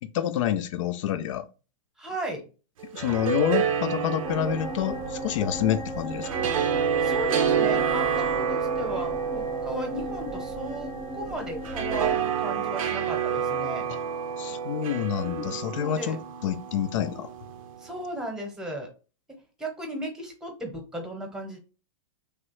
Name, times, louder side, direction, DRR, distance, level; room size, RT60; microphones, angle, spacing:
voice 1, 0.1-1.5 2.9-6.5 13.9-14.0 14.4-16.2 16.4-17.3, left 10 dB, 65° left, 0.5 m, -28 dB
voice 2, 2.0-2.4 7.0-13.9 15.2-16.2 17.8-18.9 19.6-21.6, right 1 dB, 5° right, 0.9 m, -36 dB
sound 1, 2.8-18.0, right 7 dB, 85° right, 0.5 m, -29 dB
sound 2, 4.2-12.2, right 1 dB, 20° left, 0.6 m, -36 dB
3.1 x 2.3 x 3.0 m
hypercardioid pair, 125°, 17 cm